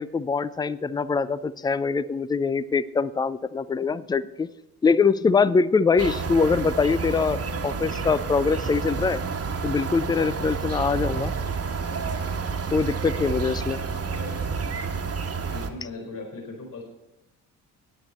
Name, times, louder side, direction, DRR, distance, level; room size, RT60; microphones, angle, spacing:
voice 1, 0.0-4.5 4.8-9.2 9.6-11.3 12.7-13.8, left 5 dB, 10° left, 18 dB, 0.4 m, -23 dB
sound 1, 6.0-15.7, right 5 dB, 30° right, 1.4 m, -30 dB
voice 2, 13.9-14.4 15.5-16.8, left 3 dB, 45° left, 1 dB, 4.8 m, -38 dB
14.0 x 9.9 x 4.3 m, 0.88 s
figure-of-eight pair, 45°, 45 cm